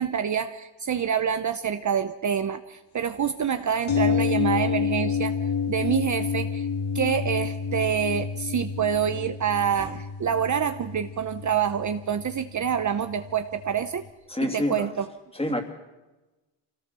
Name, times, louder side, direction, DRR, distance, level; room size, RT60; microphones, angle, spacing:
voice 1, 0.0-5.3 5.7-6.7 6.9-14.0 14.4-15.1, right 8 dB, 40° right, 9 dB, 0.8 m, -27 dB
sound 1, 3.9-13.7 14.0-14.1, left 6 dB, 75° left, 3.8 m, -29 dB
voice 2, 14.3-14.9 15.3-15.6, left 1 dB, 15° left, 4 dB, 2.9 m, -27 dB
25.5 x 17.5 x 6.9 m, 1.1 s
cardioid pair, 120°, 46 cm